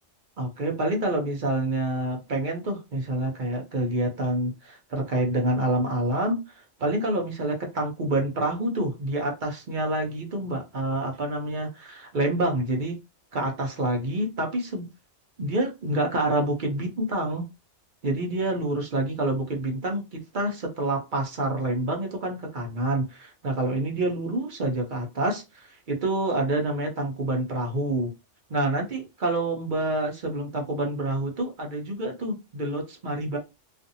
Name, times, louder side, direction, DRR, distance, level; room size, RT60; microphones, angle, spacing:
voice 1, 0.4-13.0 13.3-14.9 15.4-17.4 18.0-28.1 28.5-33.4, right 1 dB, 50° right, 0.8 m, -27 dB
2.5 x 2.4 x 2.6 m
omnidirectional pair, 1.2 m